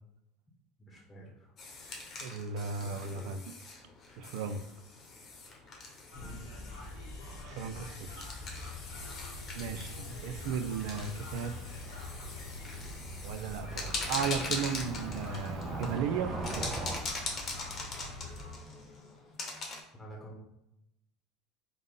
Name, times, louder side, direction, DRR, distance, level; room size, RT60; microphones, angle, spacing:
voice 1, 0.9-1.5 2.8-3.3 6.1-6.4 10.0-10.3 20.0-20.4, equal, 20° left, -2 dB, 0.9 m, -48 dB
sound 1, 1.6-19.8, left 3 dB, 45° left, 0.9 m, -42 dB
voice 2, 2.2-3.4 4.2-4.6 7.4-8.3 9.5-11.6 13.2-16.7, right 6 dB, 70° right, 9 dB, 0.3 m, -35 dB
sound 2, 6.1-18.5, left 2 dB, 85° left, 1.0 m, -45 dB
Cricket / Motor vehicle (road), 9.9-17.0, right 2 dB, 30° right, 0.6 m, -42 dB
3.6 x 2.0 x 3.7 m, 0.83 s
hypercardioid pair, 85°, 0 cm